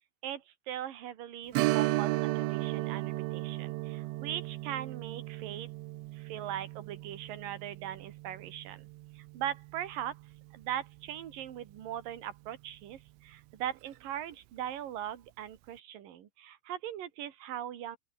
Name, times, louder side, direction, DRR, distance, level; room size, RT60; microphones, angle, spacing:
voice 1, 0.2-5.7 6.1-8.9 9.1-10.2 10.5-18.0, right 11 dB, 55° right, 3.3 m, -40 dB
Strum, 1.5-10.7 11.1-11.2 13.7-13.9 14.3-14.4, right 19 dB, 90° right, 3.3 m, -35 dB
open air
omnidirectional pair, 5.2 m